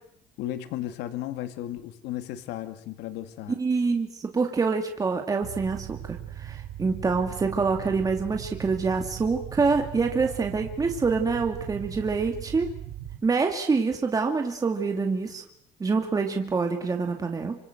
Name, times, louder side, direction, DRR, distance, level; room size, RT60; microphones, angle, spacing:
voice 1, 0.4-3.6, left 12 dB, 80° left, 9 dB, 2.3 m, -34 dB
voice 2, 3.5-12.7 13.2-15.4 15.8-17.7, right 4 dB, 20° right, 4 dB, 2.4 m, -26 dB
sound 1, 5.4-13.2, right 12 dB, 80° right, 5.0 m, -39 dB
28.0 x 26.0 x 7.9 m, 0.68 s
cardioid pair, 140°, 17 cm